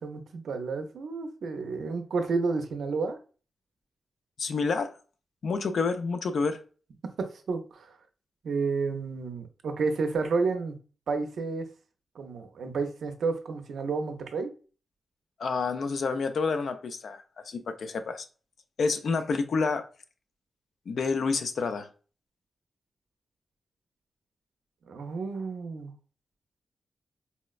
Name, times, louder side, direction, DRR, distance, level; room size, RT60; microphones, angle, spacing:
voice 1, 0.0-3.2 7.0-8.0 8.4-10.7 11.1-11.7 12.1-14.5 24.9-25.9, right 4 dB, 75° right, 0.5 m, -31 dB
voice 2, 4.4-4.9 5.4-6.6 15.4-18.3 18.8-19.9 20.9-21.9, left 4 dB, 60° left, 0.4 m, -29 dB
4.1 x 2.1 x 2.3 m
wide cardioid pair, 180°, 0 cm